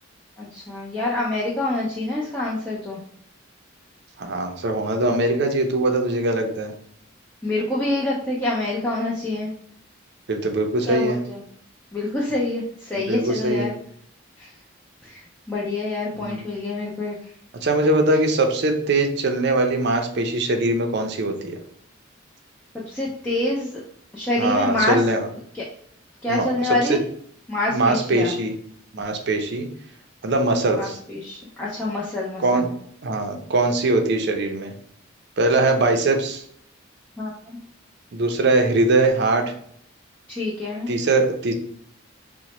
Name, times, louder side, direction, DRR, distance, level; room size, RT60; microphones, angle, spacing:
voice 1, 0.4-3.0 7.4-9.5 10.9-11.4 11.9-13.7 14.4-14.5 15.0-15.2 15.5-17.2 22.9-23.8 24.1-25.0 26.2-27.0 27.5-28.3 30.7-32.7 37.2-37.4 40.4-40.9, left 2 dB, 10° left, -6 dB, 0.5 m, -26 dB
voice 2, 4.2-6.7 10.3-11.2 12.9-13.7 16.2-16.4 17.6-21.6 24.4-25.3 26.3-27.0 27.7-28.5 28.9-29.7 30.2-31.0 32.4-32.7 33.0-34.7 35.4-36.4 38.1-39.5 40.9-41.5, right 2 dB, 55° right, 5 dB, 0.5 m, -21 dB
3.9 x 2.1 x 3.0 m, 0.63 s
head